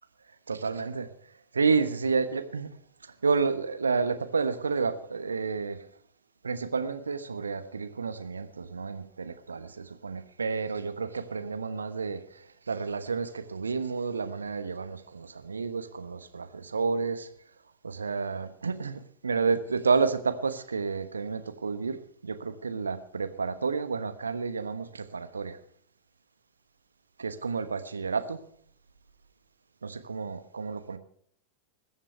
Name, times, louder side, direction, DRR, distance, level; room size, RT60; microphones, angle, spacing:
voice 1, 0.5-1.1 1.5-2.7 3.0-5.8 6.4-17.3 17.8-25.6 27.2-28.4 29.8-31.0, right 5 dB, 75° right, 1.2 m, -30 dB
21.0 x 7.4 x 5.8 m
figure-of-eight pair, 90°, 0 cm